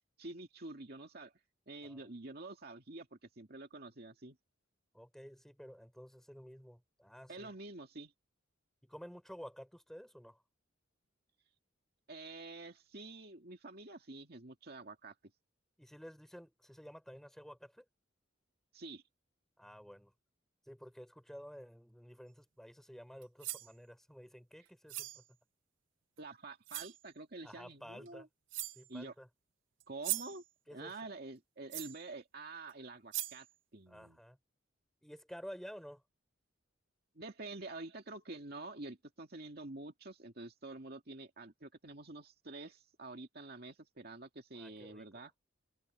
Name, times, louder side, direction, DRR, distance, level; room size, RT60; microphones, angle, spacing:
voice 1, 0.2-1.3 1.7-4.4 7.3-8.1 12.1-15.1 18.7-19.0 26.2-28.3 28.9-29.1 29.9-30.4 30.7-33.5 33.7-34.2 37.2-45.3, right 2 dB, 55° right, 2.3 m, -48 dB
voice 2, 1.8-2.1 4.9-7.5 8.8-10.4 15.8-17.9 19.6-20.1 20.7-25.2 27.4-28.3 28.7-29.3 30.7-30.9 33.9-34.4 35.0-36.0 44.5-45.1, equal, ahead, 6.2 m, -52 dB
sound 1, 23.2-23.7 24.9-25.2 26.2-26.3 26.7-27.0 28.1-28.2 28.5-28.9 29.8-30.4 31.7-32.0 32.7-32.8 33.1-33.5, right 16 dB, 75° right, 0.7 m, -40 dB
head